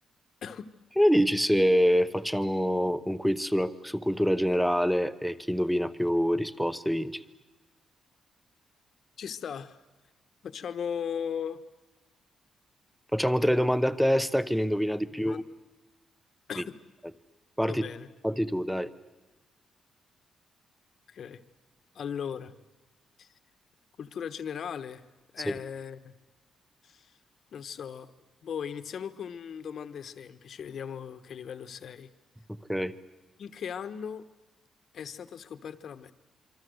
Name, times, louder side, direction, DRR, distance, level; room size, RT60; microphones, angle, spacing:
voice 1, 1.0-7.2 13.1-15.4 16.6-16.7 17.6-17.8 18.2-18.9 25.5-25.6 32.7-32.9, equal, ahead, 14 dB, 0.9 m, -25 dB
voice 2, 9.2-9.8 10.4-11.6 15.1-15.4 16.5-16.7 17.7-18.1 21.1-21.4 21.9-22.6 23.2-23.3 24.0-25.0 25.3-26.1 26.8-27.1 27.5-28.1 28.4-32.1 33.4-34.2 34.9-36.1, left 7 dB, 50° left, 11 dB, 1.2 m, -37 dB
26.5 x 25.0 x 8.0 m, 1.1 s
cardioid pair, 165°, 0 cm